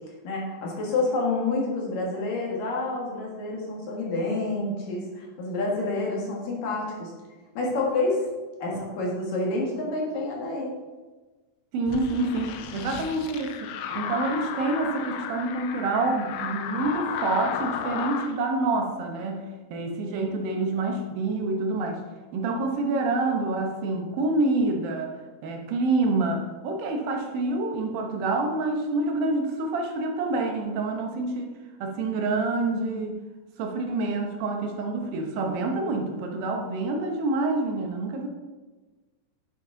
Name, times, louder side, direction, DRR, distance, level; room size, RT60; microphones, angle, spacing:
voice 1, 0.2-7.1 7.6-8.2 8.6-10.7, left 2 dB, 65° left, -2 dB, 3.3 m, -28 dB
voice 2, 11.7-19.5 19.7-22.0 22.3-25.1 25.4-31.5 31.8-33.2 33.6-38.3, right 2 dB, 75° right, 2 dB, 2.7 m, -27 dB
sound 1, 11.9-18.3, left 8 dB, 85° left, 2.5 m, -34 dB
9.8 x 7.3 x 3.9 m, 1.2 s
omnidirectional pair, 4.3 m